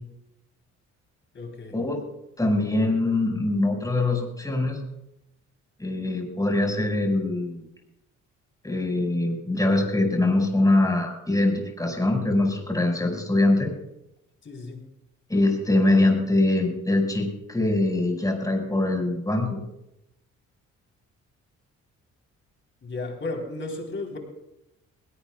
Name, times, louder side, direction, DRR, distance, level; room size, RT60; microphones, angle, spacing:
voice 1, 1.3-1.8 14.4-14.9 22.8-24.2, left 2 dB, 40° left, 3 dB, 3.8 m, -34 dB
voice 2, 2.4-4.8 5.8-7.7 8.6-13.7 15.3-19.5, left 2 dB, 10° left, 1 dB, 5.3 m, -23 dB
21.0 x 17.5 x 2.3 m, 0.85 s
cardioid pair, 90°, 30 cm